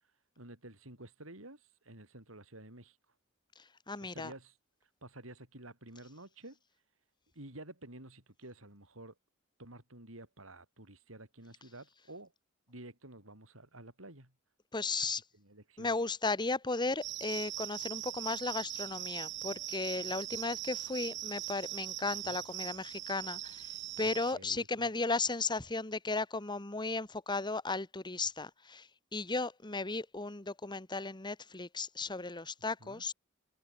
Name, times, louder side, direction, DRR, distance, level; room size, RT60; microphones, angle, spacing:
voice 1, 0.4-3.0 4.0-4.6 5.0-6.6 7.3-9.2 9.6-12.3 12.7-14.3 15.3-15.9 22.2-22.4 24.0-24.9 32.8-33.0, right 1 dB, 85° right, 7.2 m, -51 dB
voice 2, 3.9-4.3 14.7-15.2 15.8-33.1, left 3 dB, 20° left, 1.6 m, -35 dB
sound 1, 17.0-24.3, right 15 dB, 60° right, 1.0 m, -41 dB
head